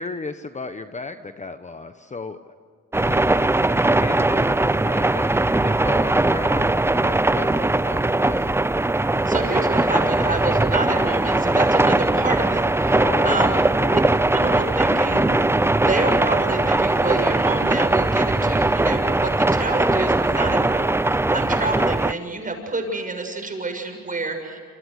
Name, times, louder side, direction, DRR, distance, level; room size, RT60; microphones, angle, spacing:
voice 1, 0.0-2.4 3.0-8.5 12.9-14.1, left 4 dB, 25° left, 9 dB, 1.1 m, -34 dB
sound 1, 2.9-22.1, right 2 dB, 10° right, 0.6 m, -20 dB
voice 2, 9.3-13.6 13.9-14.0 14.3-15.4 15.7-24.6, right 3 dB, 25° right, 4 dB, 7.0 m, -28 dB
27.5 x 27.0 x 6.6 m, 2.2 s
cardioid pair, 90°, 30 cm